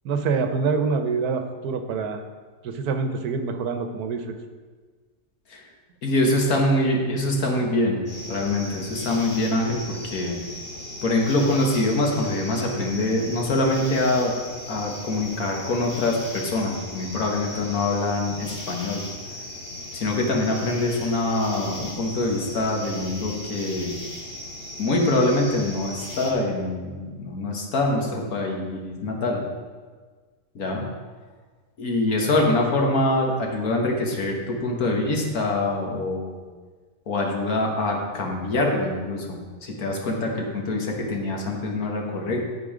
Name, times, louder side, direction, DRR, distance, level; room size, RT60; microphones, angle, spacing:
voice 1, 0.0-2.2 2.6-4.3, right 4 dB, 85° right, 7 dB, 1.3 m, -26 dB
voice 2, 6.0-10.4 11.0-14.3 14.7-19.0 19.9-24.0 24.8-29.4 30.6-30.8 31.8-36.5 37.1-42.4, left 2 dB, 70° left, 0 dB, 1.8 m, -24 dB
sound 1, 8.1-26.3, left 1 dB, 35° left, 1.9 m, -37 dB
12.0 x 4.7 x 5.0 m, 1.5 s
omnidirectional pair, 1.6 m